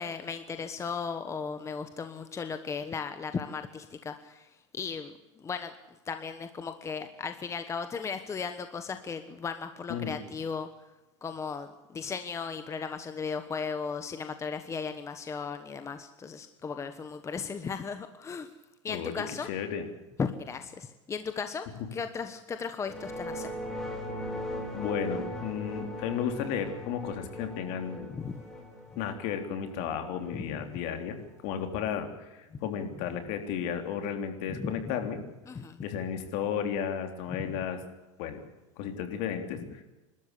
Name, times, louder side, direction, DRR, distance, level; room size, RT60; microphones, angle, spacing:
voice 1, 0.0-5.7 6.0-10.7 11.2-18.5 18.8-19.5 20.2-21.7 21.9-23.5 28.1-28.4 30.4-30.6 32.5-32.6 34.5-34.7 35.5-35.8, left 5 dB, 20° left, 9 dB, 1.2 m, -36 dB
voice 2, 18.9-19.8 24.7-28.1 29.0-35.2 35.8-37.8 38.2-38.4 38.8-39.8, left 8 dB, 55° left, 6 dB, 3.6 m, -33 dB
sound 1, 22.8-31.5, left 1 dB, 5° left, 4.3 m, -39 dB
28.0 x 13.0 x 8.3 m, 1.0 s
supercardioid pair, 130°, 16 cm